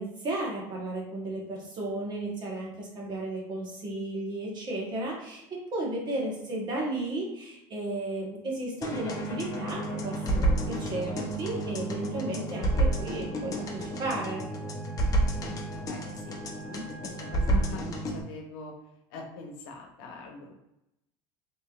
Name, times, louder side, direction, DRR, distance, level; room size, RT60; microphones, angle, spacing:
voice 1, 0.0-14.4, right 2 dB, 35° right, -2 dB, 1.2 m, -34 dB
sound 1, 8.8-18.2, right 1 dB, 30° left, 0.6 m, -30 dB
Wind instrument woodwind instrument, 12.5-17.8, right 2 dB, 5° right, 0.7 m, -49 dB
voice 2, 15.3-18.8 19.1-20.6, left 3 dB, 80° left, 1 dB, 0.9 m, -42 dB
3.2 x 2.9 x 2.4 m, 0.85 s
supercardioid pair, 125°, 12 cm